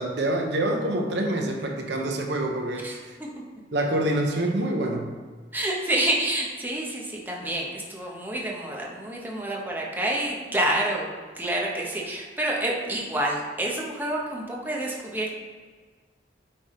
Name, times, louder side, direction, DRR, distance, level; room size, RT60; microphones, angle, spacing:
voice 1, 0.0-3.2 3.7-5.1, right 1 dB, 70° right, 2 dB, 0.8 m, -26 dB
voice 2, 5.5-11.1 11.3-15.3, right 1 dB, 10° right, -2 dB, 0.9 m, -28 dB
8.7 x 3.5 x 4.3 m, 1.5 s
head